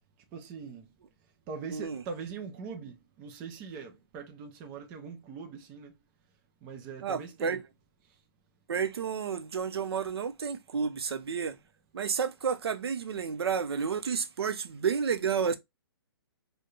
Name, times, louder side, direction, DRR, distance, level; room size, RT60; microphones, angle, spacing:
voice 1, 0.3-0.9 1.5-5.9 6.6-7.6, right 5 dB, 10° right, 0.3 m, -42 dB
voice 2, 1.7-2.0 7.0-7.6 8.7-11.6 11.9-15.6, right 6 dB, 85° right, 0.6 m, -31 dB
4.4 x 2.2 x 3.0 m
hypercardioid pair, 165°, 13 cm